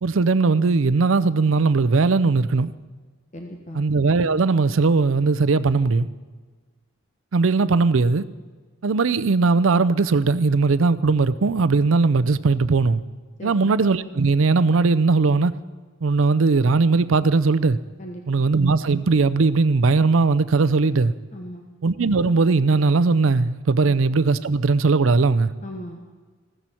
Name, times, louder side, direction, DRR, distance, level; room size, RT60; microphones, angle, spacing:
voice 1, 0.0-2.7 3.7-6.1 7.3-8.2 8.8-13.0 13.4-15.5 16.0-17.8 18.3-21.1 21.8-25.5, right 4 dB, 90° right, 0.5 m, -19 dB
voice 2, 3.3-3.8 13.4-13.7 18.0-18.5 21.3-21.7 25.6-26.0, equal, 35° left, 1.1 m, -37 dB
15.5 x 13.5 x 4.4 m
head